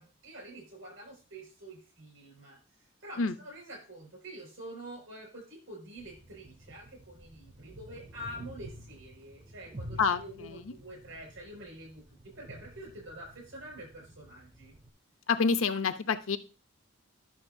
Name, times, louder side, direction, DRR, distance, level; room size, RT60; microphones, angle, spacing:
voice 1, 0.0-14.7, right 1 dB, 75° right, 2 dB, 5.3 m, -47 dB
sound 1, 6.0-14.9, right 1 dB, 25° right, 0.5 m, -50 dB
voice 2, 10.0-10.7 15.3-16.4, left 5 dB, 80° left, 10 dB, 0.7 m, -28 dB
11.0 x 6.4 x 2.6 m, 0.33 s
head